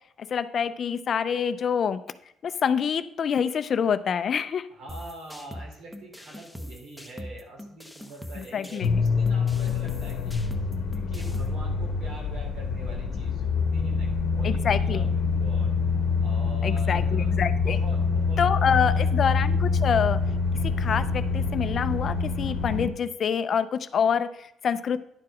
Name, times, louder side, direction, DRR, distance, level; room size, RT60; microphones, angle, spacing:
voice 1, 0.3-2.0 2.4-4.7 8.4-9.0 14.4-15.1 16.6-17.8 18.4-20.2 20.6-25.0, left 7 dB, 50° left, 13 dB, 0.4 m, -26 dB
voice 2, 4.7-15.8 16.2-17.4 17.6-19.1, right 2 dB, 75° right, 0 dB, 3.0 m, -45 dB
sound 1, 4.9-11.5, equal, ahead, 0.9 m, -42 dB
sound 2, 8.8-22.9, left 4 dB, 90° left, 0.9 m, -26 dB
10.5 x 4.8 x 4.9 m, 0.76 s
cardioid pair, 105°, 0 cm